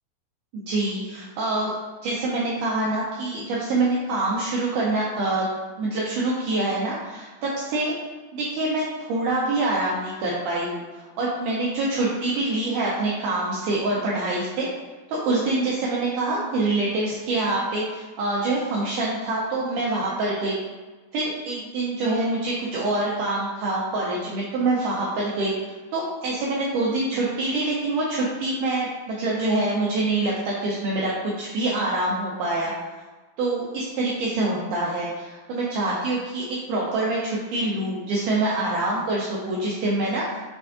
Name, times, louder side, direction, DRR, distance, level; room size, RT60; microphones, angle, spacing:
voice 1, 0.5-1.7 2.0-5.5 5.8-7.9 8.3-14.7 15.1-20.6 21.1-32.7 33.4-40.3, right 2 dB, 90° right, -5 dB, 1.8 m, -25 dB
6.1 x 3.3 x 2.4 m, 1.3 s
omnidirectional pair, 4.4 m